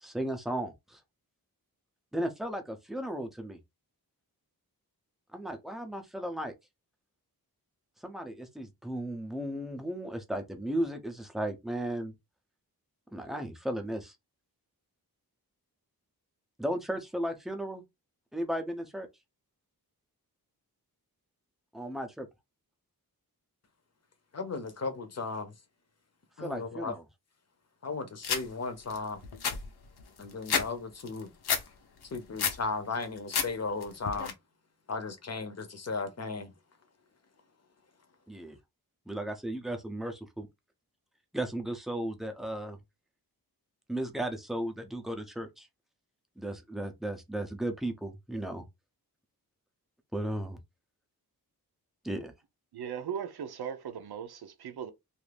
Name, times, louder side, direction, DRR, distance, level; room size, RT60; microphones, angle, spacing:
voice 1, 0.0-1.0 2.1-3.6 5.3-6.5 8.0-12.1 13.1-14.1 16.6-17.8 18.3-19.1 21.7-22.3 26.4-27.0 38.3-38.6 39.1-40.5 41.3-42.8 43.9-45.7 46.4-48.7 50.1-50.6 52.0-52.3, right 1 dB, ahead, 0.5 m, -35 dB
voice 2, 24.3-25.5 26.4-26.9 27.8-29.2 30.2-31.3 32.1-34.3 34.9-36.5, left 4 dB, 45° left, 0.7 m, -36 dB
sound 1, 28.2-28.4 28.9-29.0 29.2-30.7 31.0-31.6 32.0-32.6 33.0-33.5 33.8-34.3, left 6 dB, 90° left, 0.7 m, -30 dB
voice 3, 52.7-54.9, right 8 dB, 90° right, 0.6 m, -38 dB
2.6 x 2.5 x 3.2 m
wide cardioid pair, 155°, 37 cm